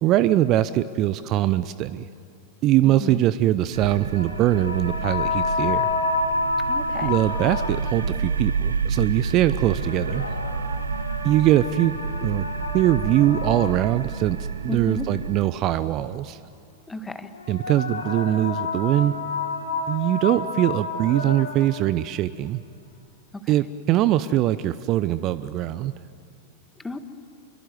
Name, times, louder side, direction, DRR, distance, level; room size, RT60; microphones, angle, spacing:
voice 1, 0.0-2.0 2.6-5.9 7.0-10.3 11.2-11.9 12.2-12.4 12.7-14.4 14.6-16.4 17.5-19.1 19.9-22.6 23.5-25.9, right 13 dB, 35° right, 15 dB, 0.7 m, -22 dB
sound 1, 3.7-15.5, right 5 dB, 70° right, 0.9 m, -29 dB
sound 2, 4.1-8.1 9.6-14.2 17.3-21.8, left 4 dB, 80° left, 3.3 m, -29 dB
voice 2, 6.7-7.2 14.7-15.1 16.9-17.3 23.3-23.5 26.8-27.0, left 2 dB, 10° left, 10 dB, 1.6 m, -33 dB
26.5 x 23.5 x 9.5 m, 2.3 s
figure-of-eight pair, 90°, 0 cm